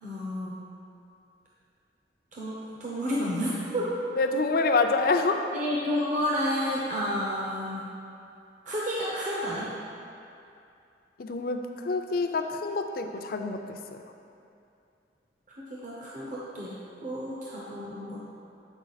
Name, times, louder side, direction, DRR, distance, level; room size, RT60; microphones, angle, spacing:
voice 1, 0.0-0.6 2.3-4.0 5.5-7.9 8.7-9.7 15.6-18.4, equal, 45° right, -6 dB, 0.8 m, -31 dB
voice 2, 4.2-5.4 11.2-14.0, left 3 dB, 55° left, 5 dB, 0.5 m, -27 dB
8.1 x 4.8 x 4.0 m, 2.6 s
head